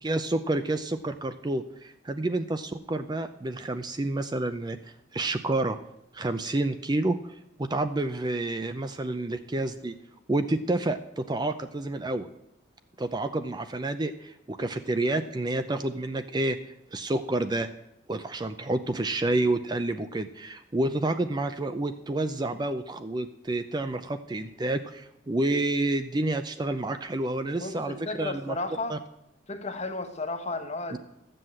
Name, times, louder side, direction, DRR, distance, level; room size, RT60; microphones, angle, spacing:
voice 1, 0.0-4.8 5.1-5.8 6.1-7.3 7.6-9.9 10.3-12.3 13.0-16.6 16.9-17.7 18.1-28.6 28.9-29.0, right 2 dB, 20° right, 9 dB, 0.5 m, -29 dB
voice 2, 27.6-29.0 29.5-31.0, left 2 dB, 35° left, 7 dB, 1.2 m, -33 dB
13.0 x 7.7 x 7.6 m, 0.83 s
head